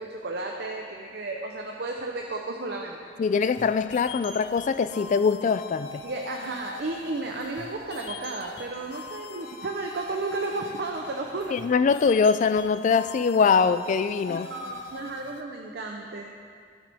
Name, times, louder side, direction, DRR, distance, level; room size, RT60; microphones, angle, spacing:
voice 1, 0.0-3.0 6.0-11.6 14.3-16.2, right 3 dB, 65° right, 1 dB, 0.7 m, -33 dB
voice 2, 3.2-6.0 11.5-14.5, left 5 dB, 45° left, 12 dB, 0.3 m, -23 dB
sound 1, 3.4-15.4, left 5 dB, 85° left, 0.7 m, -43 dB
16.5 x 6.2 x 3.5 m, 2.3 s
head